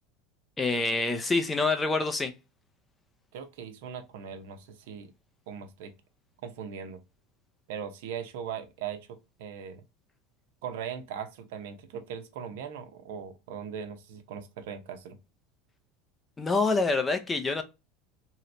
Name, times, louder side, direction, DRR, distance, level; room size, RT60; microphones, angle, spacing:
voice 1, 0.6-2.3 16.4-17.6, left 3 dB, 15° left, 0.6 m, -26 dB
voice 2, 3.3-5.1 5.5-5.9 6.4-7.0 7.7-9.8 10.6-15.2, right 7 dB, 80° right, 0.7 m, -39 dB
3.1 x 2.9 x 2.6 m
supercardioid pair, 135°, 0 cm